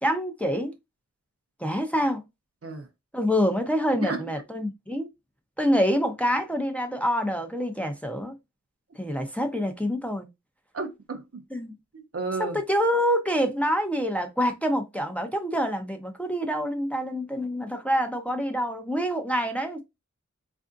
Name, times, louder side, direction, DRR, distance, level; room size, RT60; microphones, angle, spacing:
voice 1, 0.0-0.7 1.6-2.2 3.1-5.1 5.6-8.3 9.0-10.3 11.5-11.7 12.4-19.8, equal, 5° left, 0.6 m, -26 dB
voice 2, 10.7-11.4 11.9-12.6, right 3 dB, 50° right, 0.7 m, -32 dB
3.4 x 2.6 x 2.4 m
wide cardioid pair, 50°, 29 cm